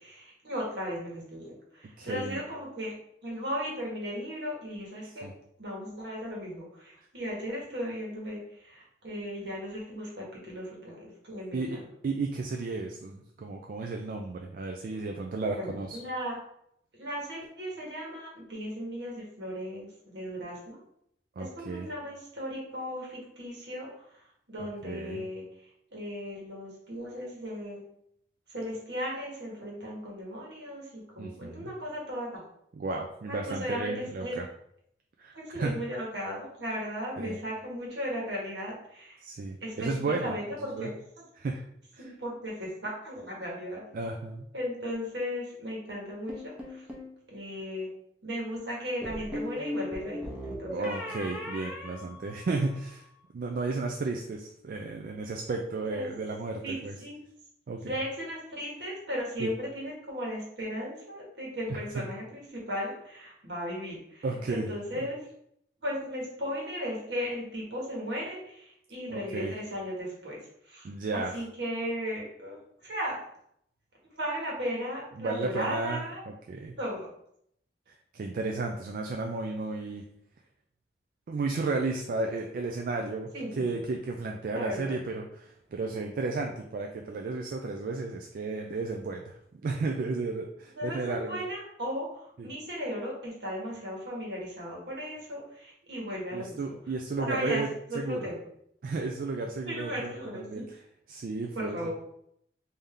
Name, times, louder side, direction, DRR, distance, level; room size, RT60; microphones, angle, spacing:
voice 1, 0.0-2.9 3.2-5.3 5.6-11.8 15.5-16.4 17.0-20.8 21.4-23.9 24.5-25.4 25.9-27.8 28.5-32.4 33.3-34.4 35.3-39.2 39.6-40.9 42.0-43.8 44.5-46.8 47.3-47.9 48.2-50.9 55.9-56.1 56.6-57.1 57.8-65.2 65.8-70.4 70.7-70.9 71.1-73.2 74.1-76.2 76.8-77.1 83.3-83.7 84.5-84.9 90.8-91.0 91.3-96.6 97.2-97.6 97.9-98.4 99.7-100.6 101.5-101.9, equal, 70° right, -3 dB, 1.4 m, -36 dB
voice 2, 2.0-2.4 5.0-5.3 11.5-16.0 21.4-21.9 24.6-25.3 31.2-31.7 32.7-34.5 35.2-35.8 37.2-37.4 39.2-40.4 40.7-40.9 41.3-41.6 41.9-42.1 43.9-44.5 50.7-53.0 53.3-57.0 57.7-58.0 59.4-59.5 61.7-62.0 64.2-65.1 69.1-69.5 70.8-71.4 75.1-76.7 77.9-80.0 81.3-91.4 92.4-92.5 96.3-98.3 98.8-100.8 101.1-101.9, right 3 dB, 55° right, 2 dB, 0.3 m, -33 dB
sound 1, 46.3-47.1 49.0-52.8, left 1 dB, 5° right, 0.7 m, -38 dB
3.4 x 2.7 x 3.6 m, 0.73 s
head